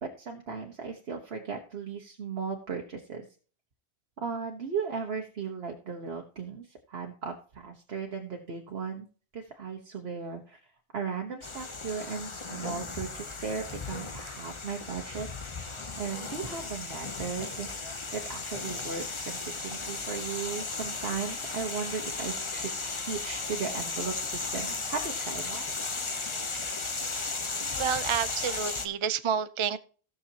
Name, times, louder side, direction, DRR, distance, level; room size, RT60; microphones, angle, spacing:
voice 1, 0.0-3.3 4.2-9.1 9.3-10.6 10.9-15.3 15.6-25.6, right 5 dB, 70° right, 2 dB, 1.3 m, -36 dB
sound 1, 11.4-28.9, left 3 dB, 30° left, 0.9 m, -35 dB
voice 2, 27.8-29.8, right 8 dB, 45° right, 13 dB, 0.4 m, -29 dB
16.5 x 6.5 x 2.8 m, 0.39 s
omnidirectional pair, 1.1 m